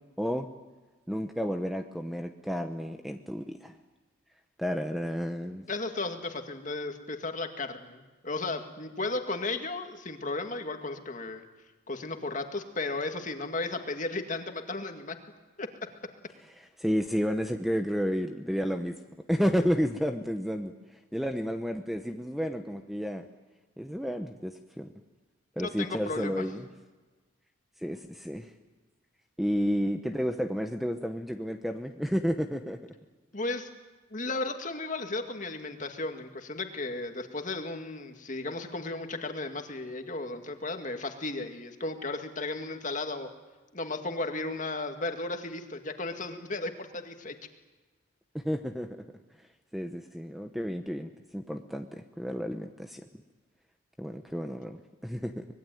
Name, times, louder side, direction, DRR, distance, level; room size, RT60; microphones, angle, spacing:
voice 1, 0.2-0.5 1.1-3.8 4.6-5.6 16.6-19.0 19.3-20.7 21.1-23.3 23.8-24.9 25.6-26.7 27.8-28.5 29.4-32.8 48.3-49.0 49.7-53.0 54.0-55.5, equal, ahead, 6 dB, 0.9 m, -31 dB
voice 2, 5.7-11.4 11.9-15.2 15.6-15.7 25.6-26.4 33.3-33.7 34.1-43.3 43.7-47.4, left 2 dB, 35° left, 6 dB, 2.1 m, -35 dB
25.0 x 21.0 x 9.2 m, 1.3 s
head